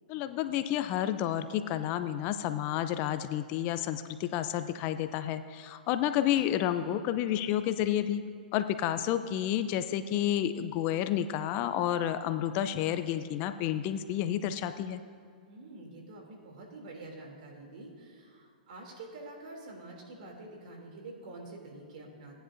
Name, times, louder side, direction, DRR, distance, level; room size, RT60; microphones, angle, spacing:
voice 1, 0.1-8.2 8.5-15.0, left 11 dB, 40° left, 11 dB, 0.5 m, -30 dB
voice 2, 6.0-7.1 15.5-22.4, right 2 dB, 60° right, 0 dB, 2.8 m, -47 dB
17.5 x 10.0 x 2.6 m, 2.2 s
hypercardioid pair, 125°, 5 cm